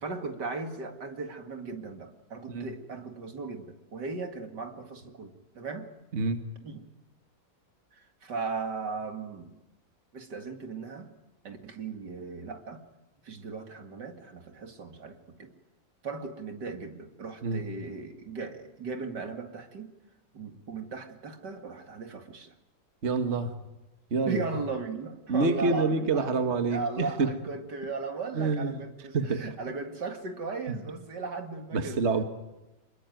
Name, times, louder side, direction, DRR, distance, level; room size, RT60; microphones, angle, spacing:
voice 1, 0.0-5.9 6.6-6.9 7.9-9.5 10.1-11.1 11.4-12.8 13.2-15.5 16.0-19.9 20.3-22.5 24.2-26.3 26.7-32.0, right 4 dB, 65° right, 6 dB, 2.8 m, -37 dB
voice 2, 23.0-23.5 24.1-24.4 25.3-27.3 28.4-28.7 29.1-29.4 31.7-32.2, right 4 dB, 40° right, 7 dB, 1.8 m, -27 dB
27.0 x 21.5 x 9.3 m, 0.96 s
omnidirectional pair, 2.0 m